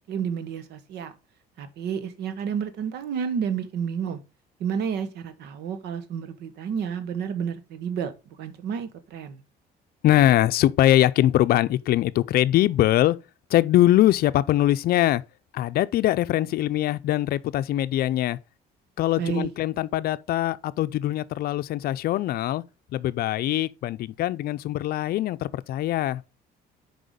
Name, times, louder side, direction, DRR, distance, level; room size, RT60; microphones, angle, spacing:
voice 1, 0.1-1.1 1.6-4.2 4.6-8.1 8.4-9.4 19.2-19.5, right 7 dB, 75° right, 1.2 m, -30 dB
voice 2, 10.0-13.2 13.5-15.2 15.5-18.4 19.0-22.6 22.9-26.2, left 14 dB, 65° left, 0.5 m, -22 dB
6.3 x 4.9 x 5.1 m
cardioid pair, 110°, 17 cm